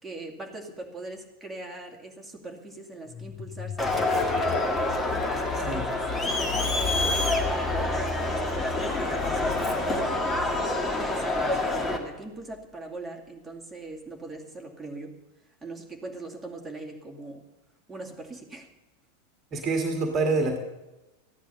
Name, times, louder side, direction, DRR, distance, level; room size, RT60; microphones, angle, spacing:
voice 1, 0.0-4.7 5.6-15.2 15.6-17.5 17.9-18.7, right 2 dB, 5° right, -1 dB, 2.3 m, -41 dB
sound 1, 3.1-11.8, left 12 dB, 30° left, 0.9 m, -38 dB
Crowd, 3.8-12.0, left 2 dB, 15° left, 2.1 m, -27 dB
voice 2, 19.5-20.6, right 3 dB, 25° right, 4 dB, 1.9 m, -26 dB
14.5 x 10.0 x 6.8 m, 1.0 s
figure-of-eight pair, 90°, 0 cm